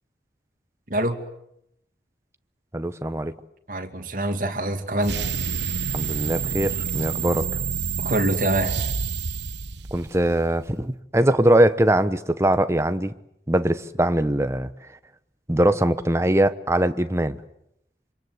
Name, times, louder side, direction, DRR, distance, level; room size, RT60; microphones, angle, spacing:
voice 1, 2.7-3.3 5.9-7.5 9.9-13.1 13.5-14.7 15.5-17.4, right 1 dB, 15° right, 1.0 m, -21 dB
voice 2, 3.7-5.2 8.0-8.9, right 1 dB, 50° right, 2.5 m, -25 dB
sound 1, 5.0-10.4, right 6 dB, 85° right, 1.1 m, -28 dB
26.5 x 26.0 x 8.0 m
head